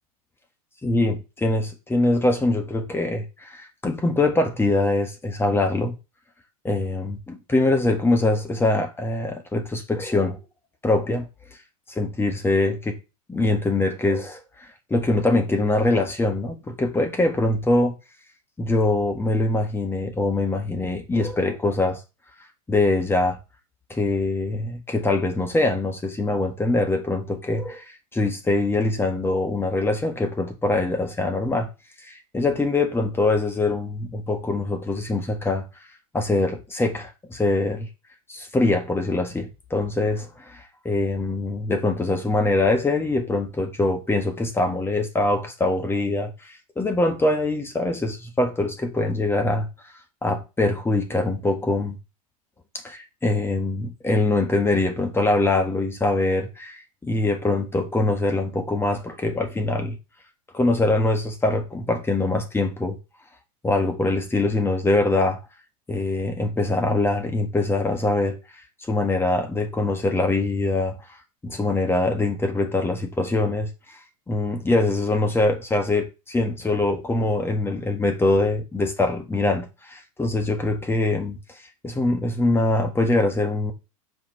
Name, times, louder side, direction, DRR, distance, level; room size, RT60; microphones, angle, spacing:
voice 1, 0.8-6.0 6.6-10.4 10.8-11.3 11.9-13.0 13.3-17.9 18.6-22.0 22.7-23.4 23.9-31.7 32.0-35.7 36.1-37.9 38.3-49.7 50.2-52.0 52.8-60.0 60.5-63.0 63.6-65.4 65.9-68.4 68.9-71.0 71.4-74.0 74.3-81.4 81.8-83.7, left 2 dB, 10° left, 1.5 m, -23 dB
6.0 x 4.6 x 4.4 m
hypercardioid pair, 95°, 19 cm